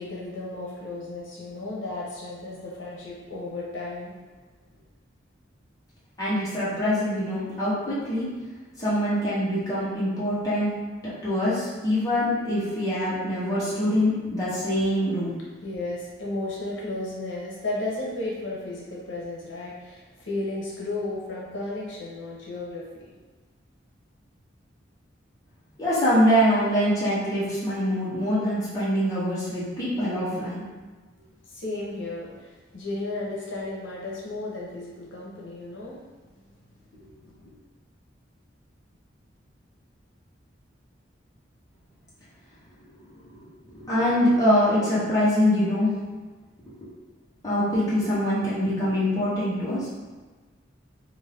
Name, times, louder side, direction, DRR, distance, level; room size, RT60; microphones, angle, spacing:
voice 1, 0.0-4.2 15.6-23.2 31.5-36.1 36.9-37.5, left 2 dB, 85° left, -5 dB, 0.7 m, -34 dB
voice 2, 6.2-8.3 8.8-10.7 11.2-15.3 25.8-30.6 43.7-46.0 47.4-49.9, equal, 20° left, -10 dB, 0.9 m, -24 dB
2.6 x 2.5 x 3.3 m, 1.3 s
head